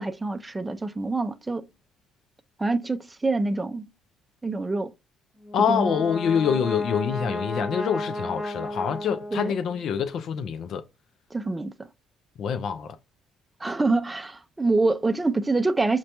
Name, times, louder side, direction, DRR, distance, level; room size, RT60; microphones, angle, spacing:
voice 1, 0.0-1.6 2.6-3.8 4.4-4.9 5.7-6.0 9.3-9.5 11.3-11.7 13.6-16.0, right 3 dB, 20° right, 0.4 m, -26 dB
Brass instrument, 5.4-9.8, left 1 dB, 10° left, 0.8 m, -33 dB
voice 2, 5.5-10.8 12.4-13.0, left 7 dB, 65° left, 0.4 m, -26 dB
5.0 x 2.2 x 2.9 m
supercardioid pair, 75°, 0 cm